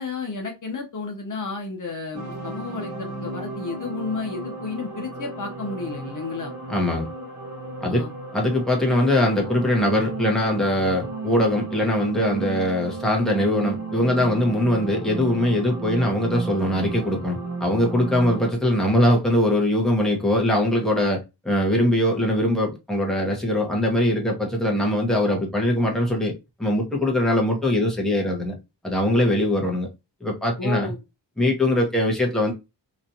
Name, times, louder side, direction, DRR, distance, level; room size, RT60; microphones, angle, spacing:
voice 1, 0.0-6.5 7.8-8.1 30.6-31.0, left 4 dB, 45° left, 0.8 m, -32 dB
sound 1, 2.1-18.5, right 3 dB, 45° right, 1.2 m, -34 dB
voice 2, 6.7-7.1 7.8-8.0 8.3-26.3 26.6-28.5 28.8-29.9 30.2-30.9 31.4-32.5, left 1 dB, ahead, 0.9 m, -22 dB
3.0 x 2.5 x 2.6 m
wide cardioid pair, 145°, 43 cm